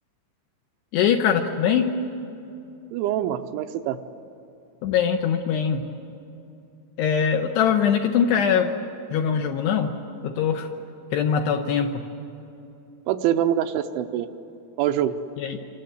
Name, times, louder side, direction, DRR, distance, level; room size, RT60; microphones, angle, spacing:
voice 1, 0.9-1.9 4.8-5.8 7.0-8.7 9.1-9.9 10.2-10.7 11.1-12.1 15.4-15.6, left 7 dB, 75° left, 5 dB, 2.6 m, -22 dB
voice 2, 2.9-4.0 13.1-14.3 14.8-15.2, right 11 dB, 80° right, 8 dB, 2.9 m, -24 dB
27.0 x 26.5 x 8.0 m, 2.7 s
omnidirectional pair, 5.7 m